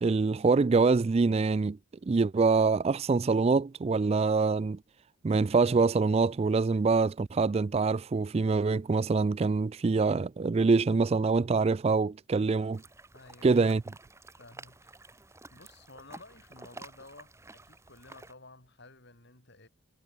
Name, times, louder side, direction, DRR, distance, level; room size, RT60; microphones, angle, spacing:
voice 1, 0.0-1.8 2.1-4.8 5.2-12.8 13.4-13.8, right 4 dB, 30° right, 0.3 m, -25 dB
sound 1, 12.7-18.3, right 2 dB, 15° right, 1.2 m, -51 dB
voice 2, 13.1-13.8 14.3-19.7, left 2 dB, 50° left, 5.4 m, -54 dB
head